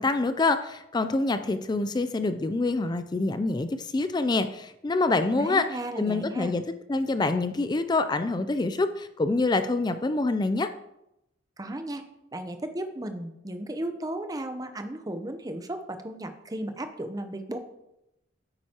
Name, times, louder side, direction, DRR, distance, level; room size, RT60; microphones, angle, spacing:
voice 1, 0.0-5.7 6.0-6.6 6.9-10.7, left 3 dB, 20° left, 10 dB, 0.3 m, -26 dB
voice 2, 5.3-6.5 11.6-12.1 12.3-17.6, right 1 dB, 20° right, 7 dB, 0.7 m, -35 dB
9.2 x 8.8 x 2.9 m, 0.86 s
head